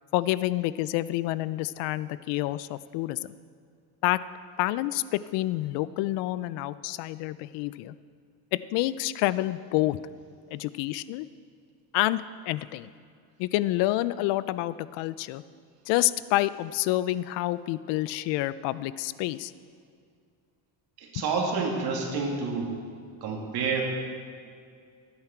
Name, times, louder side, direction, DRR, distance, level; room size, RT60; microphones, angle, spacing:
voice 1, 0.1-3.3 4.0-4.2 4.6-8.0 8.5-10.0 10.5-11.3 11.9-12.9 13.4-15.4 15.9-19.5, left 16 dB, 75° left, 17 dB, 0.5 m, -28 dB
voice 2, 21.1-22.8 23.2-23.8, right 4 dB, 60° right, 0 dB, 2.4 m, -28 dB
13.5 x 9.6 x 4.5 m, 2.2 s
cardioid pair, 120°, 43 cm